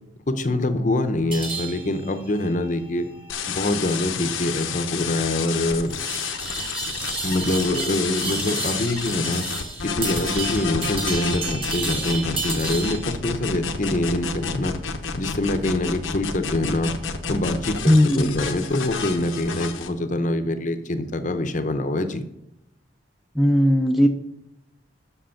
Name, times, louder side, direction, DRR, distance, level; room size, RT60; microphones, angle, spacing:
voice 1, 0.3-3.1 3.5-5.9 7.2-9.5 9.8-14.8 15.1-17.0 17.3-22.2, left 1 dB, 40° left, 9 dB, 0.7 m, -25 dB
sound 1, 1.3-13.1, right 3 dB, 25° right, 1.4 m, -33 dB
sound 2, 3.3-19.9, left 5 dB, 85° left, 0.9 m, -30 dB
voice 2, 17.9-18.3 23.4-24.1, equal, ahead, 5 dB, 0.4 m, -17 dB
7.7 x 6.6 x 5.6 m, 0.84 s
head